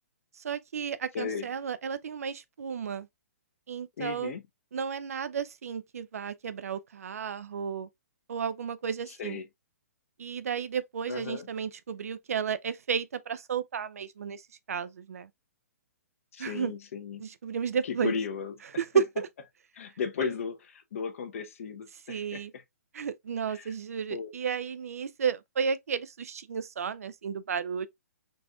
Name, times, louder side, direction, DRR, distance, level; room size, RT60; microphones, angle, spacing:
voice 1, 0.3-3.1 3.7-4.3 4.7-7.9 8.3-9.4 10.2-15.3 16.4-16.7 17.2-18.1 18.8-19.3 20.2-20.3 22.1-22.5 22.9-27.9, right 7 dB, 65° right, 0.5 m, -33 dB
voice 2, 1.1-1.5 4.0-4.4 9.1-9.5 11.1-11.5 16.3-17.3 17.8-18.5 19.7-20.6 20.9-22.6 23.5-23.7 24.1-24.3, left 6 dB, 55° left, 0.9 m, -35 dB
4.0 x 3.5 x 2.3 m
figure-of-eight pair, 125°, 9 cm